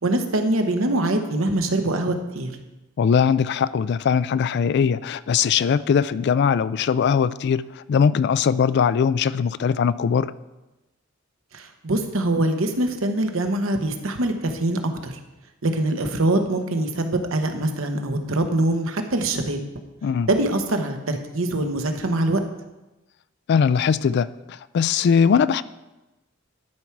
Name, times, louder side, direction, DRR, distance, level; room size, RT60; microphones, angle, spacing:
voice 1, 0.0-2.5 11.5-15.2 15.6-19.6 20.3-22.4, right 1 dB, 75° right, 6 dB, 1.0 m, -23 dB
voice 2, 3.0-10.3 20.0-20.3 23.5-25.6, left 6 dB, 55° left, 17 dB, 0.3 m, -20 dB
11.5 x 4.7 x 5.8 m, 1.0 s
head